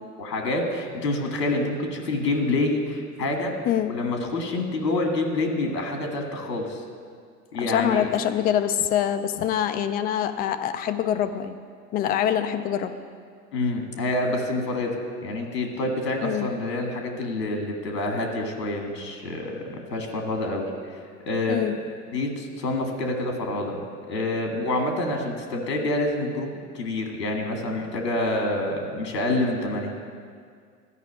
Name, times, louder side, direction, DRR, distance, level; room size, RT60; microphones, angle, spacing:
voice 1, 0.2-3.5 3.9-6.8 7.5-8.1 13.5-14.9 15.2-19.6 19.9-20.7 21.3-21.6 22.1-29.9, left 2 dB, 85° left, 3 dB, 2.1 m, -27 dB
voice 2, 3.7-4.0 7.6-11.6 11.9-12.9 16.2-16.5 21.5-21.8, left 10 dB, 20° left, 9 dB, 0.3 m, -25 dB
12.5 x 5.7 x 8.6 m, 2.1 s
hypercardioid pair, 90°, 48 cm